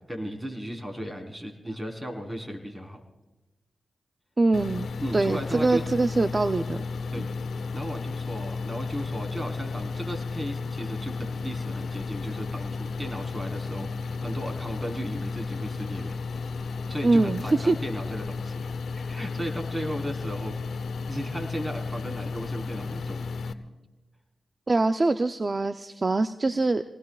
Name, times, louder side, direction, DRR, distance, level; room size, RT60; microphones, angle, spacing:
voice 1, 0.0-3.0 5.0-5.8 7.1-7.3 7.7-16.2 16.9-18.6 18.9-23.2, equal, 15° right, 3 dB, 4.1 m, -35 dB
voice 2, 4.4-4.9 5.1-6.8 7.2-7.3 17.0-17.8 24.7-26.8, right 2 dB, 40° right, 8 dB, 0.6 m, -23 dB
sound 1, 4.5-23.5, left 4 dB, 80° left, 0.9 m, -33 dB
28.0 x 19.5 x 2.5 m, 1.1 s
cardioid pair, 50°, 0 cm